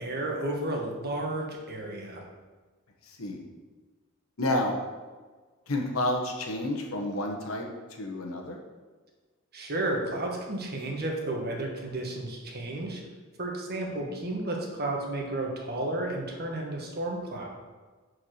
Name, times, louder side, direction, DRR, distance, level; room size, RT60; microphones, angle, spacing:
voice 1, 0.0-2.2 9.5-13.0 13.4-17.5, right 2 dB, 50° right, 0 dB, 1.5 m, -32 dB
voice 2, 4.4-4.7 5.7-7.7 8.0-8.6 14.0-14.1, left 1 dB, 75° left, 1 dB, 1.3 m, -30 dB
7.0 x 4.8 x 6.5 m, 1.4 s
head